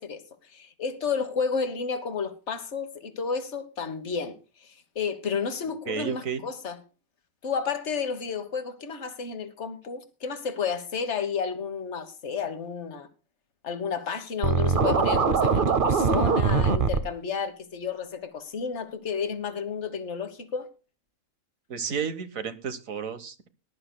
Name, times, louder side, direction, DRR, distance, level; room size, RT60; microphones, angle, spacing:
voice 1, 0.0-6.8 7.4-13.1 13.6-20.7, left 6 dB, 55° left, 1.6 m, -31 dB
voice 2, 5.9-6.5 21.7-23.5, right 6 dB, 75° right, 1.7 m, -32 dB
Scratching (performance technique), 14.4-17.0, right 5 dB, 45° right, 0.9 m, -22 dB
20.0 x 12.0 x 2.2 m
omnidirectional pair, 1.4 m